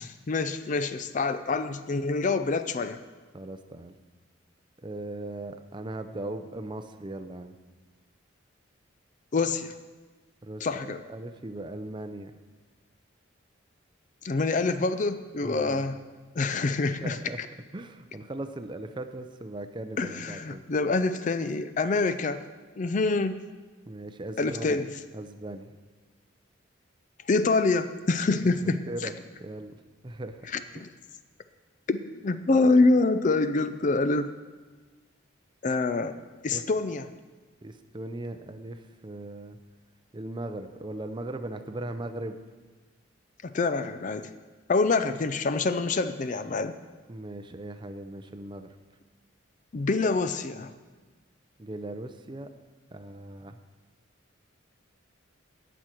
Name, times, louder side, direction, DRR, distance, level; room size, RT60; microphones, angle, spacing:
voice 1, 0.0-3.0 9.3-9.8 10.6-11.0 14.2-16.0 16.4-17.2 20.0-22.4 22.8-23.4 24.4-24.9 27.3-28.9 30.5-30.9 31.9-34.3 35.6-36.2 36.4-37.1 43.4-44.3 44.7-46.7 49.7-50.7, left 3 dB, 40° left, 11 dB, 0.4 m, -26 dB
voice 2, 3.3-3.9 4.8-7.5 10.4-12.3 15.4-15.8 17.0-17.4 17.7-20.6 23.9-24.8 25.1-25.8 28.9-29.1 29.4-29.8 30.0-30.4 36.5-36.6 37.6-39.6 40.1-42.4 47.1-48.7 51.6-52.5 52.9-53.6, right 1 dB, 25° right, 9 dB, 0.5 m, -38 dB
17.5 x 6.2 x 4.5 m, 1.3 s
head